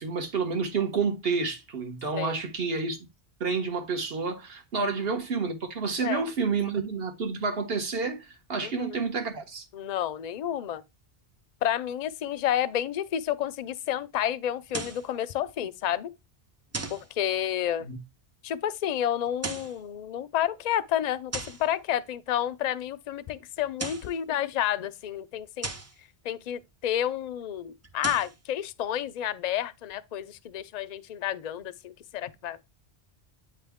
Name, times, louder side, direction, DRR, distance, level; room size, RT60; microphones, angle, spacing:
voice 1, 0.0-3.0 3.4-9.6 17.8-18.0, right 4 dB, 65° right, 1.4 m, -29 dB
voice 2, 8.6-9.0 9.7-10.8 11.6-16.1 16.9-17.9 18.4-25.7 26.2-32.6, left 11 dB, 55° left, 0.5 m, -30 dB
sound 1, 14.7-15.1 16.7-17.1 19.3-19.8 21.3-21.7 23.6-24.2 25.6-26.0 27.8-28.4, right 3 dB, 25° right, 0.3 m, -36 dB
8.9 x 3.2 x 3.5 m
omnidirectional pair, 1.1 m